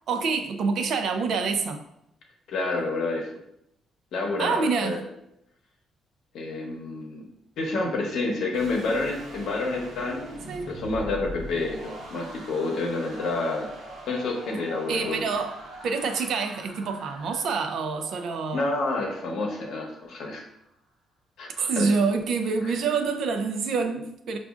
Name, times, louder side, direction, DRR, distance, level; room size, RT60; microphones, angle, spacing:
voice 1, 0.1-1.8 4.4-5.1 10.5-10.7 14.9-18.7 21.7-24.4, right 4 dB, 70° right, 6 dB, 0.4 m, -27 dB
voice 2, 2.5-3.3 4.1-5.0 6.3-7.3 7.6-10.3 10.7-13.7 14.1-15.2 18.5-20.4 21.4-21.9 22.6-22.7, left 2 dB, 75° left, 0 dB, 0.8 m, -29 dB
sound 1, 8.5-20.6, equal, 90° right, 0.8 m, -43 dB
4.9 x 2.3 x 2.4 m, 0.81 s
cardioid pair, 90°, 0 cm